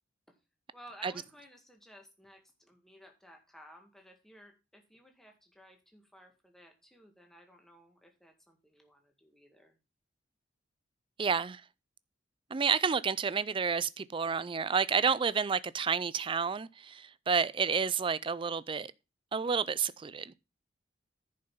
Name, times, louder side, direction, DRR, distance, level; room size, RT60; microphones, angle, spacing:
voice 1, 0.7-9.8, equal, ahead, 1.9 m, -56 dB
voice 2, 11.2-11.6 12.5-18.9 19.3-20.3, right 6 dB, 30° right, 0.4 m, -30 dB
10.5 x 5.5 x 5.5 m
head